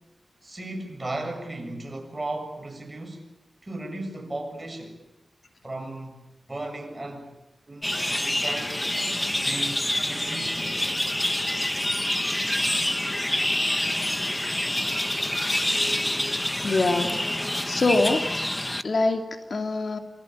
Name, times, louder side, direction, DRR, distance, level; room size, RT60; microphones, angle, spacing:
voice 1, 0.4-3.3 3.6-5.0 5.6-6.2 6.5-7.3 7.7-8.8 9.4-11.0, right 2 dB, 20° right, 4 dB, 7.4 m, -36 dB
sound 1, 7.8-18.8, left 1 dB, 10° left, 1.1 m, -27 dB
voice 2, 16.6-17.2 17.6-18.4 18.8-20.0, left 3 dB, 60° left, 5 dB, 2.9 m, -24 dB
28.0 x 24.0 x 8.7 m, 0.97 s
wide cardioid pair, 120°, 0 cm